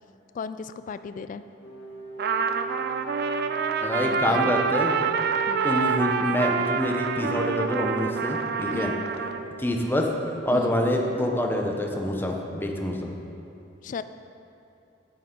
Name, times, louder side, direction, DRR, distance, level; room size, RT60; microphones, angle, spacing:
voice 1, 0.3-1.4 4.0-4.5 5.5-5.7 8.7-9.1 10.5-10.8 13.8-14.0, left 5 dB, 45° left, 12 dB, 0.3 m, -35 dB
sound 1, 1.6-11.5, right 5 dB, 65° left, 1.4 m, -38 dB
Trumpet, 2.2-9.4, right 5 dB, 55° right, 0.4 m, -27 dB
voice 2, 3.8-4.9 5.6-8.9 9.6-10.1 10.5-13.1, left 1 dB, 10° left, 1 dB, 0.7 m, -26 dB
9.5 x 8.4 x 3.8 m, 2.8 s
head